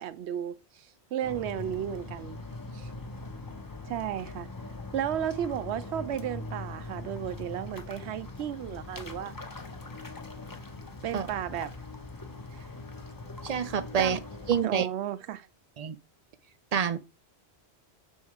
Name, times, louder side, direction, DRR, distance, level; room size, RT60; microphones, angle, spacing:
voice 1, 0.0-2.4 2.7-2.9 3.8-4.5 4.9-9.3 11.0-11.7 14.0-14.2 14.6-15.5, right 10 dB, 85° right, 0.9 m, -34 dB
sound 1, 1.2-14.6, left 2 dB, 20° left, 0.8 m, -41 dB
voice 2, 13.4-14.2 14.5-14.9 15.8-16.0 16.7-17.0, right 7 dB, 55° right, 0.4 m, -27 dB
6.3 x 3.5 x 4.7 m
omnidirectional pair, 1.1 m